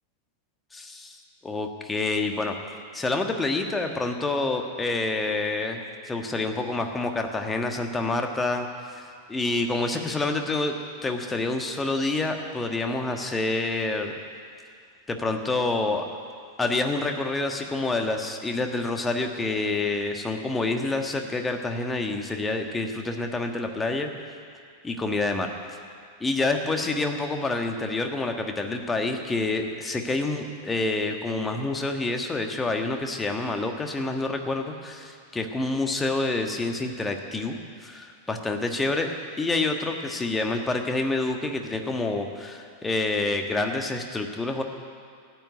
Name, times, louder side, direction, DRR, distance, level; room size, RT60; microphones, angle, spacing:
voice 1, 0.7-1.2 1.4-2.5 2.9-10.7 11.0-14.1 15.1-16.0 16.6-24.1 24.8-25.5 26.2-39.1 39.4-44.6, left 2 dB, 15° left, 4 dB, 1.4 m, -27 dB
14.5 x 9.1 x 9.2 m, 2.2 s
figure-of-eight pair, 90°, 0 cm